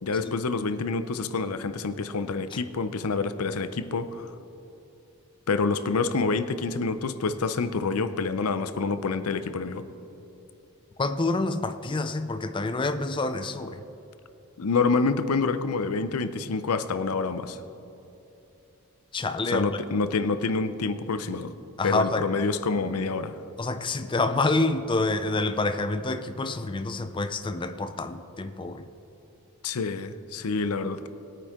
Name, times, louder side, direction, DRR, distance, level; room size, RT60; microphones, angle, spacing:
voice 1, 0.0-4.3 5.5-9.9 14.6-17.6 19.5-21.5 21.8-23.4 29.6-31.1, left 4 dB, 75° left, 12 dB, 0.6 m, -27 dB
voice 2, 11.0-13.8 19.1-19.7 21.8-22.2 23.6-28.8, left 2 dB, 20° left, 8 dB, 0.5 m, -27 dB
20.5 x 9.0 x 3.7 m, 3.0 s
head